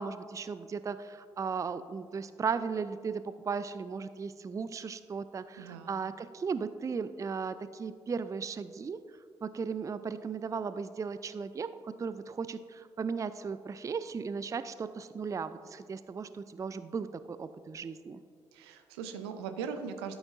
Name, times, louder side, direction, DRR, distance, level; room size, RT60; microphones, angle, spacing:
voice 1, 0.0-9.0 9.4-18.2, right 5 dB, 25° right, 13 dB, 0.4 m, -36 dB
voice 2, 5.6-5.9 18.5-20.2, right 6 dB, 75° right, 8 dB, 0.6 m, -39 dB
13.0 x 7.9 x 2.5 m, 2.2 s
figure-of-eight pair, 40°, 13 cm